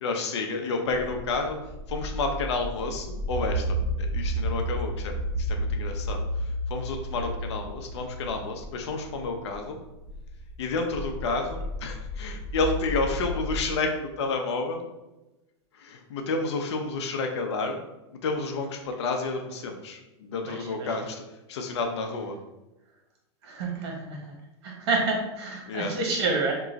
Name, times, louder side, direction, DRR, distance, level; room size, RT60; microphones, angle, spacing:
voice 1, 0.0-1.6 1.9-9.8 10.6-14.9 15.7-17.8 18.2-21.2 21.5-22.4 25.7-25.9, left 3 dB, 80° left, 4 dB, 0.7 m, -30 dB
sound 1, 0.9-13.6, equal, ahead, 1.2 m, -32 dB
voice 2, 23.4-24.2 24.6-26.5, right 3 dB, 65° right, 0 dB, 1.1 m, -28 dB
3.0 x 2.3 x 3.9 m, 1.0 s
hypercardioid pair, 110°, 14 cm